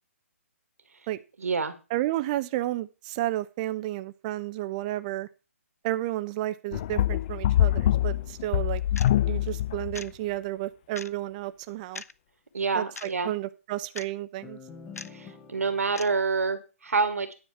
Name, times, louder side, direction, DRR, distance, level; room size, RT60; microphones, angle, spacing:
voice 1, 1.4-1.7 12.5-13.3 15.1-17.3, right 4 dB, 75° right, 9 dB, 1.9 m, -27 dB
voice 2, 1.9-5.3 5.8-8.8 9.3-12.0 12.7-14.6, right 15 dB, 30° right, 14 dB, 0.6 m, -32 dB
sound 1, 6.7-10.1, left 12 dB, 35° left, 0.4 m, -25 dB
sound 2, 7.5-10.1 14.4-16.2, left 5 dB, 20° left, 1.2 m, -50 dB
sound 3, 9.0-9.1 9.9-10.1 11.0-11.1 11.9-12.1 13.0-13.1 13.9-14.1 15.0-15.1 15.9-16.1, left 4 dB, 80° left, 0.6 m, -39 dB
9.9 x 4.4 x 7.2 m, 0.31 s
figure-of-eight pair, 140°, 8 cm